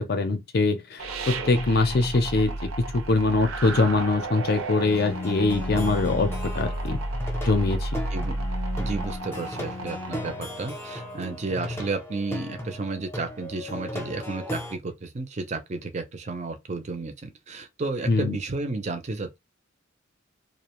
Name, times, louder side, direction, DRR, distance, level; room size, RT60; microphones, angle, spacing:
voice 1, 0.0-7.0 7.4-7.9 18.1-18.4, left 3 dB, 50° left, 0.5 m, -23 dB
sound 1, 1.0-10.4, right 2 dB, 85° right, 0.6 m, -32 dB
Bowed string instrument, 4.8-11.9, left 3 dB, 90° left, 0.7 m, -40 dB
Plucked string instrument, 5.0-14.8, left 1 dB, 10° left, 0.7 m, -37 dB
voice 2, 8.8-19.4, right 3 dB, 35° right, 0.4 m, -32 dB
2.4 x 2.1 x 2.9 m
head